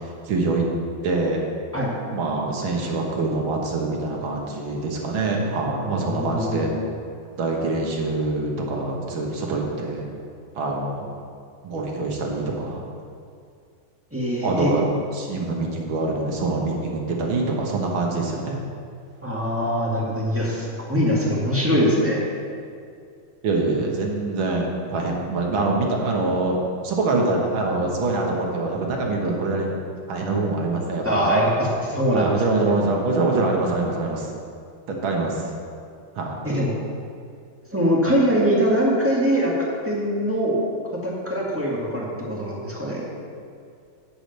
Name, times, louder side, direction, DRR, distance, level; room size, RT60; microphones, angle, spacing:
voice 1, 0.3-0.6 1.0-1.4 2.1-6.7 7.3-10.1 10.6-11.0 11.6-12.9 14.4-14.8 15.1-18.6 23.4-26.6 26.8-29.8 30.1-31.3 32.1-34.3 34.9-35.4 36.2-36.3, right 3 dB, 75° right, 0 dB, 2.1 m, -24 dB
voice 2, 6.0-6.7 14.1-14.7 19.2-22.2 31.0-32.4 36.4-36.7 37.7-39.5 39.8-40.6 41.0-43.0, equal, 5° right, -6 dB, 1.6 m, -22 dB
9.6 x 5.0 x 7.9 m, 2.3 s
omnidirectional pair, 2.3 m